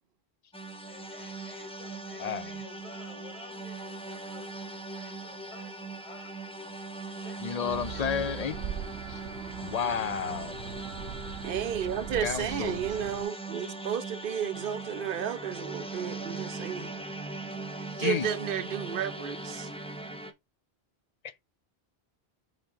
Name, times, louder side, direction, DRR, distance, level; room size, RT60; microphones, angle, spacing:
sound 1, 0.5-20.3, right 2 dB, 5° left, 0.8 m, -40 dB
voice 1, 0.9-6.7 7.2-8.7, left 1 dB, 30° left, 1.6 m, -52 dB
voice 2, 2.2-2.5 7.4-8.6 9.1-9.2 9.6-10.6 12.2-12.8 18.0-18.3, left 7 dB, 50° left, 0.6 m, -31 dB
sound 2, 7.7-13.2, right 8 dB, 80° right, 1.0 m, -40 dB
voice 3, 11.4-16.9 18.0-19.7, right 9 dB, 60° right, 0.8 m, -32 dB
5.6 x 5.2 x 3.6 m
omnidirectional pair, 1.1 m